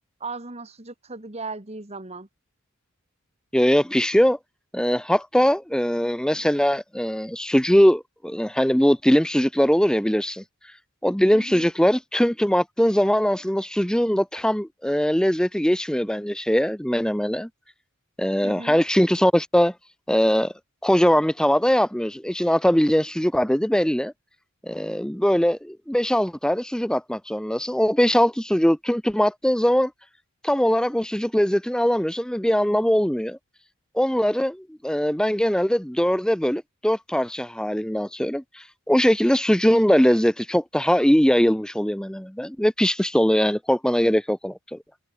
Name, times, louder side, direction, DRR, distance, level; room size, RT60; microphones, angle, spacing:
voice 1, 0.2-2.3 11.3-11.7 18.4-18.8, right 3 dB, 30° right, 1.6 m, -37 dB
voice 2, 3.5-4.4 4.7-10.4 11.0-17.5 18.2-19.7 20.1-20.5 20.8-24.1 24.6-29.9 30.4-33.4 33.9-44.8, equal, 5° left, 0.7 m, -21 dB
head